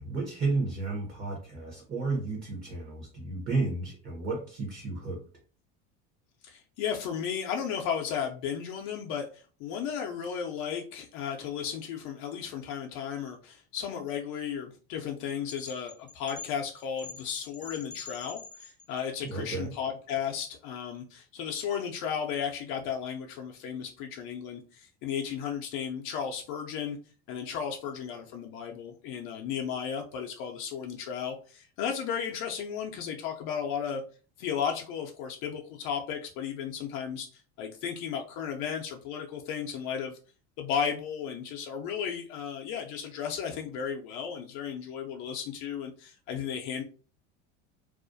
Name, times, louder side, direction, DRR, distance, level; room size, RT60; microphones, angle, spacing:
voice 1, 0.0-5.2 19.2-19.7, right 3 dB, 25° right, -2 dB, 0.8 m, -32 dB
voice 2, 6.4-27.0 27.3-34.0 34.4-40.1 40.6-46.8, left 7 dB, 65° left, 2 dB, 0.5 m, -34 dB
sound 1, 15.5-19.1, left 5 dB, 15° left, 0.5 m, -45 dB
2.3 x 2.1 x 2.5 m, 0.39 s
supercardioid pair, 115°, 34 cm